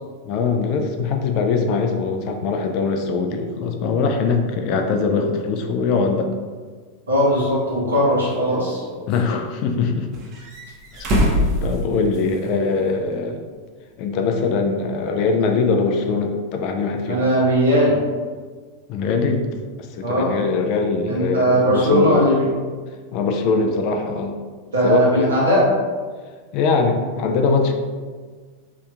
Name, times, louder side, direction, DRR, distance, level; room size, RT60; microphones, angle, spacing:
voice 1, 0.2-6.3 9.1-10.1 11.6-13.4 14.0-17.2 18.9-19.4 19.8-22.3 23.1-24.4 24.8-25.5 26.5-27.7, left 4 dB, 40° left, 4 dB, 0.3 m, -22 dB
voice 2, 7.1-8.8 17.1-18.0 20.0-20.4 21.1-22.5 24.7-25.6, equal, 75° right, -6 dB, 1.0 m, -18 dB
sound 1, 7.3-7.4 8.3-9.2 10.1-12.5 12.8-12.9 14.4-14.5, equal, 35° right, 0.7 m, -24 dB
3.2 x 2.8 x 2.3 m, 1.5 s
figure-of-eight pair, 90°, 0 cm